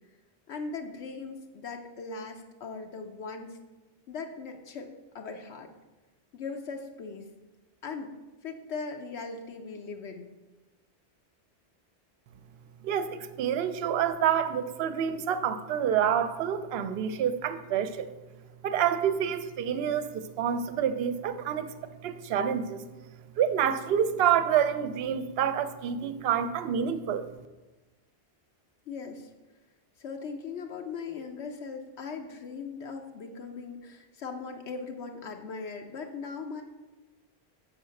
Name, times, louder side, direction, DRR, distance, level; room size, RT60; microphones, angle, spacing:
voice 1, 0.5-3.6 4.1-5.7 6.3-7.3 7.8-8.2 8.4-10.3 28.9-29.3 30.0-36.6, left 4 dB, 80° left, 3 dB, 1.0 m, -39 dB
voice 2, 12.8-18.1 18.6-21.7 22.0-22.8 23.4-27.3, right 8 dB, 70° right, 11 dB, 0.8 m, -28 dB
6.8 x 4.8 x 6.3 m, 1.1 s
omnidirectional pair, 1.1 m